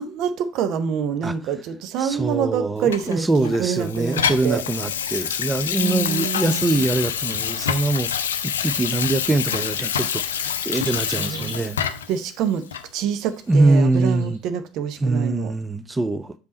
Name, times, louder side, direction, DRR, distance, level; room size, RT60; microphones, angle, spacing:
voice 1, 0.0-4.6 5.8-6.9 11.2-11.7 12.1-12.7 12.9-15.5, right 8 dB, 55° right, 0.7 m, -26 dB
voice 2, 2.0-8.1 8.4-11.8 13.5-14.4 15.0-16.3, right 2 dB, 15° right, 0.5 m, -23 dB
Water tap faucet / Sink (filling or washing), 2.9-12.2 12.7-12.9, left 8 dB, 80° left, 0.4 m, -26 dB
sound 1, 9.2-12.8 13.3-14.4, right 1 dB, 85° right, 2.8 m, -43 dB
6.3 x 5.3 x 4.1 m
figure-of-eight pair, 60°, 0 cm